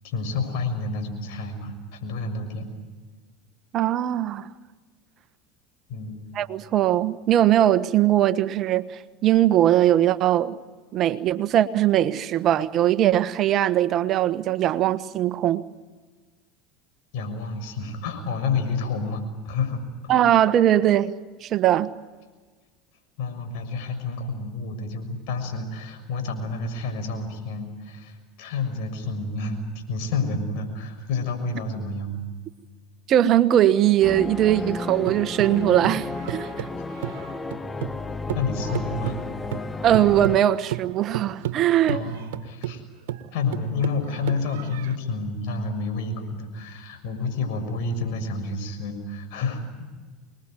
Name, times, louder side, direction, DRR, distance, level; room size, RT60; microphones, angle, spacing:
voice 1, 0.0-2.7 5.9-6.2 17.1-19.8 23.2-32.2 38.3-39.2 41.9-42.8 43.3-49.6, left 3 dB, 65° left, 6 dB, 6.5 m, -29 dB
voice 2, 3.7-4.5 6.3-10.6 10.9-15.6 20.1-21.1 21.4-21.9 33.1-36.6 39.8-42.0, right 12 dB, 45° right, 13 dB, 1.3 m, -20 dB
sound 1, 34.0-40.4, left 3 dB, 15° left, 1.2 m, -32 dB
sound 2, 34.6-38.0 38.3-45.0, right 12 dB, 75° right, 1.6 m, -33 dB
27.0 x 21.5 x 9.2 m, 1.4 s
hypercardioid pair, 90°, 0 cm